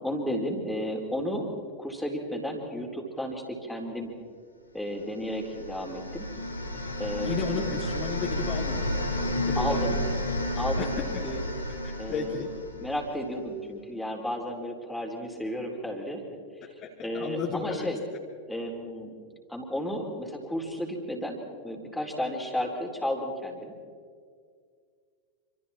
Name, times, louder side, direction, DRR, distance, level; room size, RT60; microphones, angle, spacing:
voice 1, 0.0-1.5 1.8-4.1 4.7-6.3 7.0-7.7 9.6-10.0 10.6-10.9 11.2-11.4 12.0-12.5 12.8-16.2 17.0-18.0 18.5-19.1 19.5-23.7, equal, 5° left, 0 dB, 4.1 m, -33 dB
sound 1, 5.2-13.2, left 1 dB, 80° left, 6.0 m, -31 dB
voice 2, 7.2-8.9 9.4-10.0 10.8-11.3 11.8-12.5 16.6-17.9, left 6 dB, 30° left, -1 dB, 3.0 m, -34 dB
27.5 x 26.5 x 4.4 m, 2.1 s
figure-of-eight pair, 90°, 0 cm